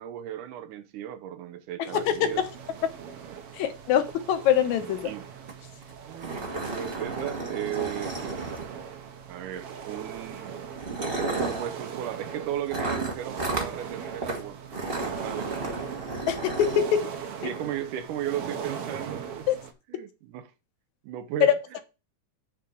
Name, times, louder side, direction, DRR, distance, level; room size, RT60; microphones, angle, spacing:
voice 1, 0.0-2.4 5.0-5.2 6.1-6.4 6.7-8.4 9.3-10.5 11.0-14.6 14.9-15.5 17.4-19.5 19.9-20.5 21.0-21.8, right 11 dB, 80° right, 2.4 m, -35 dB
voice 2, 1.8-2.3 3.5-5.1 16.3-17.0 19.5-19.6 21.4-21.8, left 10 dB, 70° left, 2.3 m, -24 dB
sound 1, 1.9-19.7, right 7 dB, 60° right, 1.7 m, -40 dB
sound 2, 5.5-5.6 5.8-5.9 6.2-9.0 10.0-10.2 10.7-11.7 12.7-13.7 14.2-14.4 14.7-16.8, right 3 dB, 35° right, 0.8 m, -32 dB
8.7 x 3.7 x 7.0 m
omnidirectional pair, 3.6 m